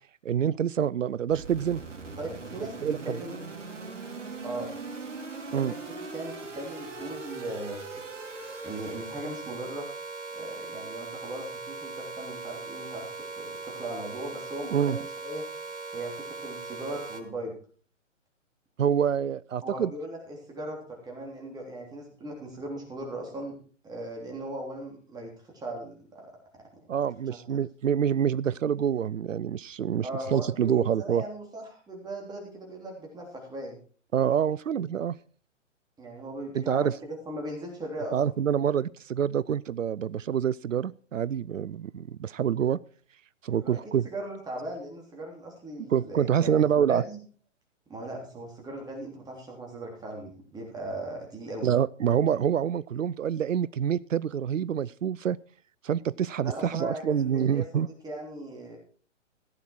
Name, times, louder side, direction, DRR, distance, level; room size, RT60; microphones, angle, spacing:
voice 1, 0.2-1.8 2.8-3.2 5.5-5.7 14.7-15.0 18.8-19.9 26.9-31.2 34.1-35.1 36.5-36.9 38.1-42.8 43.4-44.1 45.9-47.0 51.6-55.4 55.8-57.9, right 8 dB, 90° right, 21 dB, 0.5 m, -26 dB
sound 1, 1.3-17.2, right 3 dB, 70° right, 2.8 m, -40 dB
voice 2, 2.2-3.4 4.4-4.7 5.5-7.9 8.6-9.9 10.3-13.1 13.4-15.4 15.9-17.5 19.6-23.6 23.8-26.7 27.5-27.6 30.0-33.8 36.0-38.3 43.6-43.8 44.0-47.2 47.9-51.7 56.4-58.8, right 1 dB, 10° right, 0 dB, 3.4 m, -38 dB
15.5 x 8.8 x 4.5 m, 0.42 s
figure-of-eight pair, 135°, 38 cm